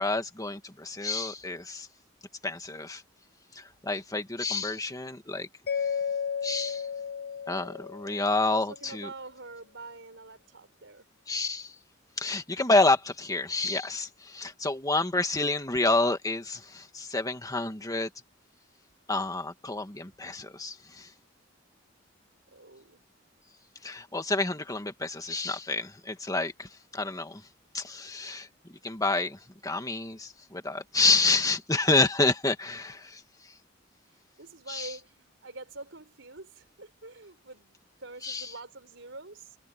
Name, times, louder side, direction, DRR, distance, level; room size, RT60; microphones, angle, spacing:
voice 1, 0.0-1.9 2.4-3.0 3.5-5.5 6.4-6.9 7.5-9.1 11.3-11.7 12.2-18.1 19.1-21.1 23.8-27.4 27.7-33.2 34.7-34.9 38.2-38.5, left 3 dB, 20° left, 1.9 m, -29 dB
Mallet percussion, 5.7-8.7, left 7 dB, 55° left, 1.1 m, -33 dB
voice 2, 8.3-11.1 22.5-23.0 34.4-39.6, right 3 dB, 75° right, 4.4 m, -46 dB
head